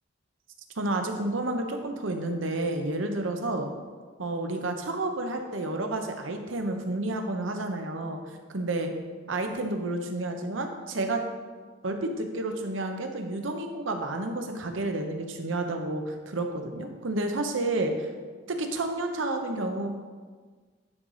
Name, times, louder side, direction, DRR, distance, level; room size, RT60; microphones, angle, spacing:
voice 1, 0.8-3.7 4.2-8.2 8.5-8.9 9.3-11.2 11.8-18.1 18.5-19.9, right 2 dB, 80° right, 5 dB, 0.9 m, -30 dB
11.0 x 4.0 x 4.9 m, 1.5 s
head